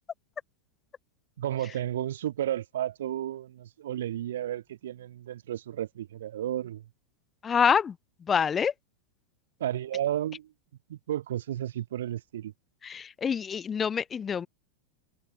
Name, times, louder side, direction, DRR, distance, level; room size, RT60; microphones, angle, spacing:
voice 1, 1.4-6.8 9.6-10.5 10.9-12.5, right 12 dB, 60° right, 4.1 m, -32 dB
voice 2, 7.4-7.9 8.3-8.7 12.8-14.5, left 7 dB, 20° left, 5.1 m, -26 dB
figure-of-eight pair, 90°, 0 cm